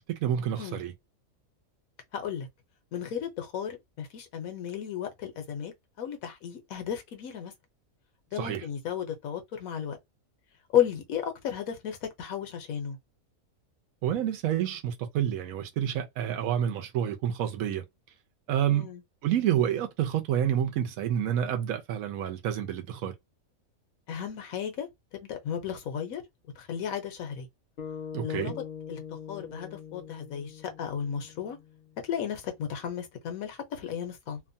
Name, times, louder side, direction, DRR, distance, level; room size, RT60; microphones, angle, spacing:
voice 1, 0.1-0.9 8.4-8.6 14.0-17.8 18.5-18.9 19.2-23.1 28.1-28.5, right 10 dB, 80° right, 1.0 m, -28 dB
voice 2, 2.1-2.5 2.9-7.5 8.3-10.0 10.7-13.0 18.7-19.0 24.1-24.9 25.1-26.2 26.6-27.5 28.2-28.6 28.9-29.0 29.3-31.6 32.0-34.4, left 9 dB, 80° left, 1.2 m, -34 dB
sound 1, 27.8-32.2, left 7 dB, 60° left, 0.5 m, -43 dB
2.9 x 2.1 x 2.6 m
omnidirectional pair, 1.5 m